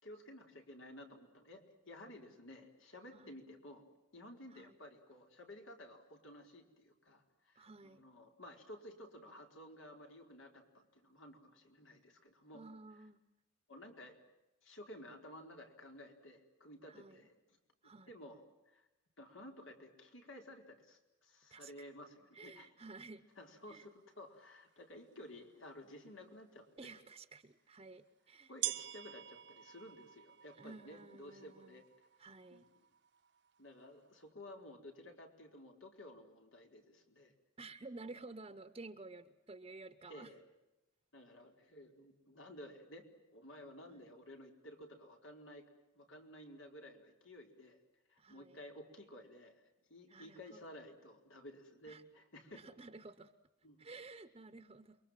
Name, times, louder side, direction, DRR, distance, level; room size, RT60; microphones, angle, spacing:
voice 1, 0.0-3.9 4.1-12.7 13.7-14.2 14.6-17.6 17.8-18.9 19.2-22.7 23.4-27.0 28.5-31.9 32.5-32.7 33.6-37.3 40.1-40.4 41.1-45.7 45.9-47.8 48.1-52.6 53.6-53.9, left 1 dB, 85° left, 3 dB, 4.6 m, -54 dB
voice 2, 7.5-8.0 12.5-13.2 16.9-17.3 17.8-18.1 21.5-21.7 22.3-23.3 23.7-23.9 26.8-28.5 30.6-31.8 32.2-32.7 37.6-40.3 43.9-44.1 48.2-48.6 50.1-50.6 51.9-52.0 52.5-53.3 53.8-55.0, right 3 dB, 30° right, 9 dB, 0.9 m, -53 dB
sound 1, 24.7-24.8 25.5-25.6 27.4-27.5 28.6-34.2, right 14 dB, 60° right, 0.9 m, -46 dB
29.0 x 23.0 x 7.6 m, 0.98 s
head